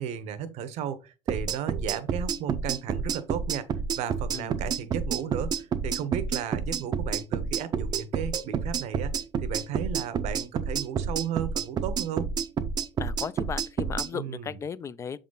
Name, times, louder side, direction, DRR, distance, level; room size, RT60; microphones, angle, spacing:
voice 1, 0.0-3.7 4.0-9.1 9.4-12.3 14.1-14.6, right 9 dB, 60° right, 0.9 m, -34 dB
sound 1, 1.3-14.1, right 6 dB, 30° right, 0.6 m, -29 dB
voice 2, 13.0-15.2, left 7 dB, 25° left, 0.4 m, -35 dB
7.1 x 3.8 x 3.9 m
cardioid pair, 130°, 13 cm